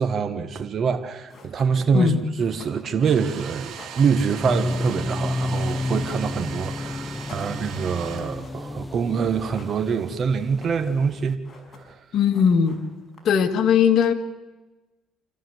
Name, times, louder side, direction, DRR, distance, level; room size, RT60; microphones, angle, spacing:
voice 1, 0.0-11.4 11.8-12.0, right 6 dB, 45° right, 1.5 m, -25 dB
sound 1, 0.9-1.0 1.3-6.7 7.0-8.9 9.2-10.1 10.4-11.0 11.3-12.0 12.3-13.5, left 2 dB, 30° left, 6.2 m, -48 dB
Domestic sounds home sounds, 2.9-8.8, right 9 dB, 65° right, 2.6 m, -39 dB
sound 2, 4.4-11.3, left 2 dB, 10° left, 0.7 m, -31 dB
voice 2, 12.1-12.8 13.2-14.1, left 7 dB, 60° left, 1.9 m, -18 dB
27.5 x 14.0 x 8.0 m
cardioid pair, 105°, 0 cm